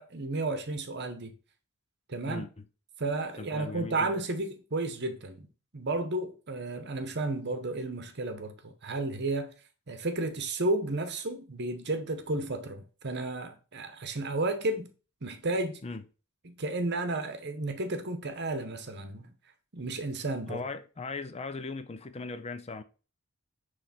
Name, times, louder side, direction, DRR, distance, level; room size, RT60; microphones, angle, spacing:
voice 1, 0.0-1.3 2.1-2.4 3.0-5.5 5.7-9.5 9.9-14.9 15.2-15.8 16.4-19.3 19.7-20.6, right 2 dB, 55° right, 1.1 m, -32 dB
voice 2, 2.3-2.6 3.4-4.1 15.8-16.0 20.5-22.8, left 3 dB, 30° left, 0.5 m, -38 dB
9.9 x 3.3 x 4.3 m
head